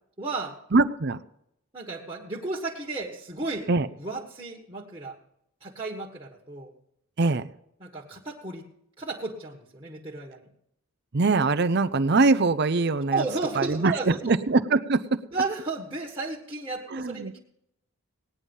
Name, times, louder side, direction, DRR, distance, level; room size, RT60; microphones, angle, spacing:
voice 1, 0.2-0.5 1.7-3.7 4.0-5.2 5.6-6.7 7.8-8.6 9.0-10.5 13.1-14.3 15.3-17.4, right 3 dB, 20° right, -4 dB, 1.5 m, -33 dB
voice 2, 0.7-1.2 3.7-3.9 7.2-7.5 11.1-13.2 13.5-15.2 16.9-17.3, right 3 dB, 50° right, 11 dB, 0.6 m, -23 dB
18.0 x 10.0 x 5.4 m, 0.78 s
head